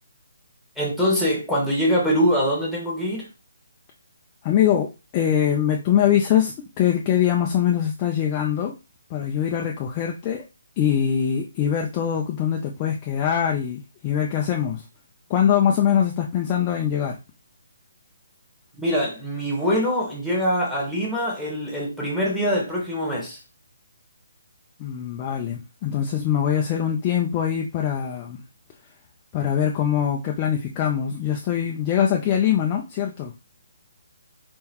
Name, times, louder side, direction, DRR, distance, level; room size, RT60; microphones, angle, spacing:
voice 1, 0.8-3.3 18.8-23.4, equal, ahead, 1.3 m, -23 dB
voice 2, 4.4-8.7 9.1-10.4 10.8-14.8 15.3-17.2 24.8-28.4 29.3-33.3, left 9 dB, 20° left, 0.4 m, -23 dB
4.2 x 3.8 x 2.9 m
hypercardioid pair, 170°, 0 cm